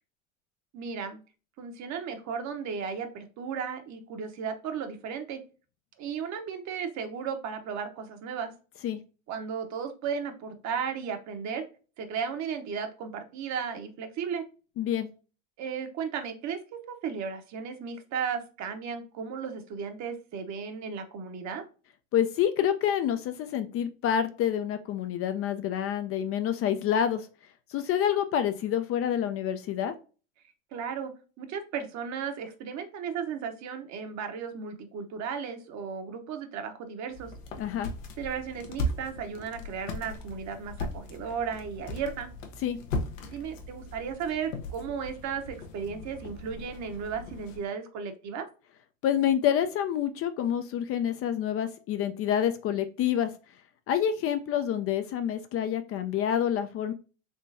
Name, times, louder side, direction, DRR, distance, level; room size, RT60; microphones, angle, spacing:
voice 1, 0.7-1.2 1.6-5.4 6.0-8.5 9.3-11.6 12.0-14.4 15.6-16.6 16.9-21.6 30.7-37.3 38.2-42.3 43.3-48.5, right 6 dB, 45° right, 7 dB, 0.9 m, -35 dB
voice 2, 14.8-15.1 22.1-27.3 27.7-30.0 37.6-37.9 42.6-42.8 49.0-53.3 53.9-56.9, left 9 dB, 35° left, 9 dB, 0.5 m, -27 dB
sound 1, 37.1-47.6, left 1 dB, 80° left, 0.9 m, -38 dB
3.7 x 3.2 x 2.5 m, 0.35 s
hypercardioid pair, 95°, 38 cm